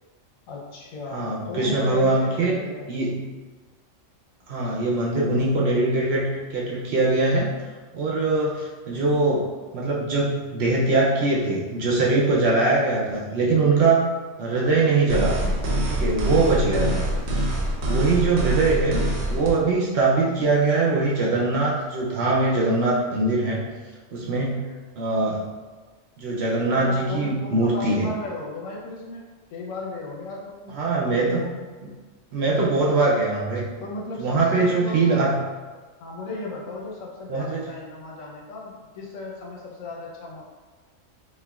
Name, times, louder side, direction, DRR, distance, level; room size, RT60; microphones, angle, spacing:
voice 1, 0.5-2.9 4.6-4.9 26.8-31.7 33.8-35.1 36.0-40.4, left 2 dB, 85° left, -2 dB, 1.1 m, -36 dB
voice 2, 1.1-2.6 2.9-3.3 4.5-7.5 7.9-9.5 9.7-14.1 14.4-15.5 15.9-17.0 17.9-19.0 19.3-23.6 24.1-24.7 25.0-25.5 26.2-28.1 30.7-31.5 31.8-31.9 32.3-33.7 34.2-35.4 37.3-37.7, right 3 dB, 65° right, -4 dB, 0.7 m, -22 dB
sound 1, 15.1-19.5, right 1 dB, 90° right, 1.1 m, -25 dB
4.4 x 2.0 x 2.3 m, 1.4 s
omnidirectional pair, 1.3 m